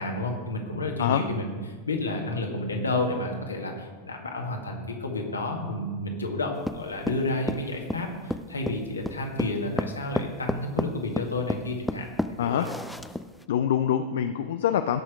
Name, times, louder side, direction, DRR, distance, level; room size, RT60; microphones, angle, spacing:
voice 1, 0.0-12.1 12.4-12.7, left 2 dB, 75° left, 2 dB, 1.8 m, -31 dB
sound 1, 6.6-13.4, left 1 dB, 5° left, 0.5 m, -31 dB
voice 2, 13.5-15.0, left 9 dB, 60° left, 9 dB, 0.5 m, -25 dB
17.0 x 6.2 x 4.9 m, 1.4 s
figure-of-eight pair, 90°, 0 cm